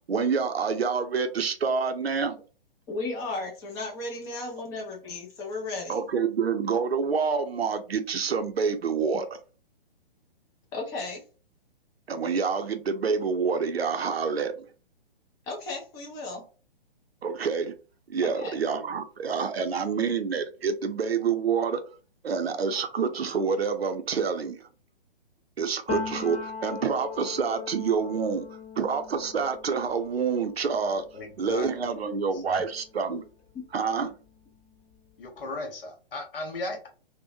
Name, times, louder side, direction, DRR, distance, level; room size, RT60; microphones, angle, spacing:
voice 1, 0.1-2.4 5.9-9.3 12.1-14.7 17.2-17.7 18.1-21.8 22.2-24.7 25.6-28.4 28.8-31.0 31.4-33.2 33.7-34.1, right 5 dB, 90° right, 8 dB, 0.6 m, -27 dB
voice 2, 2.9-6.0 10.7-11.2 15.5-16.4 18.2-18.6, left 2 dB, 10° left, -1 dB, 0.4 m, -35 dB
Piano, 25.9-33.5 33.8-35.4, left 6 dB, 30° left, 0.9 m, -40 dB
voice 3, 31.1-31.9 32.3-32.6 35.2-36.9, left 2 dB, 65° left, 2 dB, 1.1 m, -36 dB
2.6 x 2.1 x 2.5 m, 0.36 s
figure-of-eight pair, 130°, 30 cm